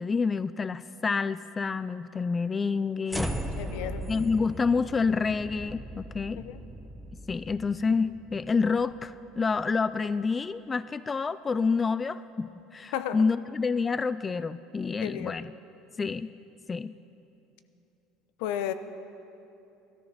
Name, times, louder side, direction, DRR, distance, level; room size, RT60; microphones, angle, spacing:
voice 1, 0.0-3.3 4.1-6.4 7.3-15.5 16.0-16.3 16.7-16.9, left 4 dB, 20° left, 15 dB, 0.3 m, -28 dB
sound 1, 3.1-9.4, equal, ahead, 0.9 m, -38 dB
voice 2, 3.6-4.0 6.4-6.6 12.9-13.2 15.0-15.4 18.4-18.7, left 11 dB, 75° left, 11 dB, 0.8 m, -33 dB
18.0 x 13.5 x 5.7 m, 2.9 s
supercardioid pair, 125°, 0 cm